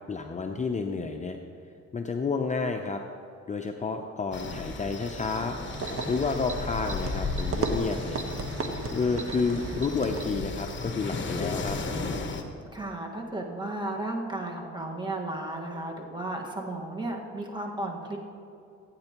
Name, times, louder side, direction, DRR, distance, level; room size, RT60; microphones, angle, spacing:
voice 1, 0.1-1.4 1.9-3.0 3.5-5.6 6.1-8.2 8.9-11.8, left 4 dB, 25° left, 4 dB, 0.6 m, -30 dB
sound 1, 4.3-12.4, left 3 dB, 40° left, 1.1 m, -35 dB
sound 2, 5.6-10.5, right 3 dB, 45° right, 1.1 m, -35 dB
voice 2, 12.7-18.2, right 2 dB, 15° right, 0 dB, 1.6 m, -34 dB
15.5 x 8.9 x 3.0 m, 2.6 s
cardioid pair, 90°, 30 cm